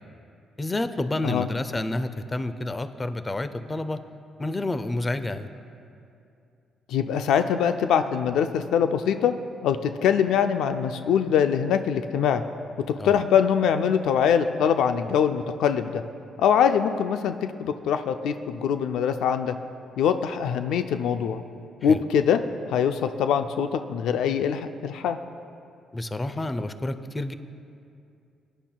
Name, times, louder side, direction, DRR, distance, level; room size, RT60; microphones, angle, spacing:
voice 1, 0.6-4.0 4.4-5.5 13.0-13.2 21.8-22.0 25.9-27.3, left 2 dB, 20° left, 11 dB, 0.5 m, -29 dB
voice 2, 6.9-9.3 9.6-12.4 12.8-16.0 16.4-19.5 20.0-21.4 21.8-22.4 22.7-25.2, left 8 dB, 85° left, 8 dB, 0.4 m, -23 dB
20.5 x 10.0 x 2.3 m, 2.5 s
cardioid pair, 90°, 0 cm